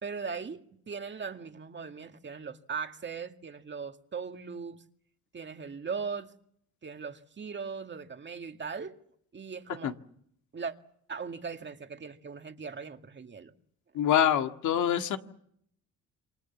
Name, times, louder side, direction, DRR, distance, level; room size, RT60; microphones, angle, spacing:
voice 1, 0.0-4.8 5.3-6.3 6.8-9.0 9.3-10.0 10.5-10.8 11.1-13.5, right 5 dB, 35° right, 2.1 m, -39 dB
voice 2, 13.9-15.2, left 10 dB, 80° left, 2.0 m, -25 dB
28.5 x 24.5 x 7.3 m
cardioid pair, 90°, 30 cm